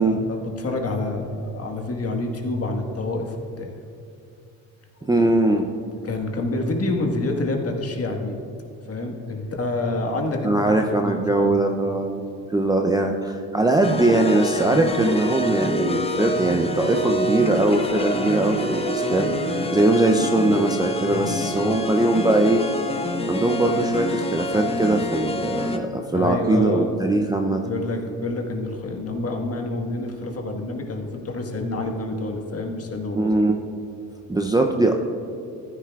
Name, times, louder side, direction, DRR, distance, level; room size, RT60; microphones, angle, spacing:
voice 1, 0.0-3.7 5.0-5.1 6.0-8.4 8.8-10.6 10.9-11.6 21.1-21.3 24.8-24.9 26.1-26.9 27.6-33.3, left 2 dB, 40° left, 2 dB, 1.6 m, -28 dB
voice 2, 5.1-5.7 10.4-12.2 12.5-22.6 22.9-27.7 33.1-33.6 34.3-34.9, right 2 dB, 10° right, 3 dB, 0.6 m, -21 dB
sound 1, 13.8-25.8, left 1 dB, 15° left, 0.9 m, -26 dB
14.5 x 9.8 x 2.4 m, 2.5 s
supercardioid pair, 80°, 38 cm